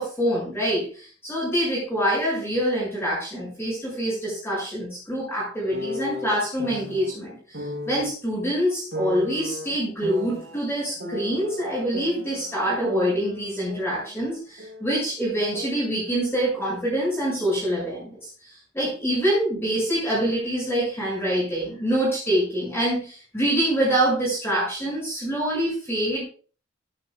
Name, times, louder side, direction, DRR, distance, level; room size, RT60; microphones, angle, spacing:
voice 1, 0.0-26.2, right 1 dB, 10° left, -7 dB, 6.7 m, -25 dB
sound 1, 5.7-7.1 7.5-8.1 8.9-10.6 11.0-12.6 12.8-15.0 15.2-16.8, left 2 dB, 65° right, 4.5 m, -36 dB
14.0 x 11.5 x 2.4 m, 0.39 s
head